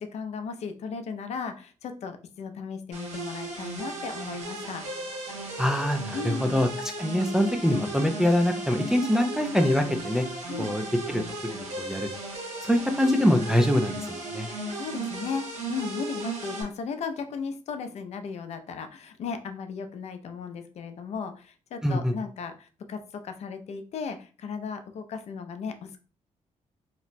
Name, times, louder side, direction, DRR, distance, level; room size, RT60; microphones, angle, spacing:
voice 1, 0.0-4.8 6.1-6.6 10.5-10.8 14.5-26.0, left 5 dB, 60° left, 7 dB, 0.5 m, -36 dB
sound 1, 2.9-16.6, right 2 dB, 70° right, 1.2 m, -36 dB
voice 2, 5.6-6.7 7.0-10.3 10.6-11.2 11.5-12.1 12.6-14.5 21.8-22.1, equal, 5° right, 4 dB, 0.3 m, -24 dB
3.0 x 2.1 x 4.0 m, 0.37 s
wide cardioid pair, 160°, 12 cm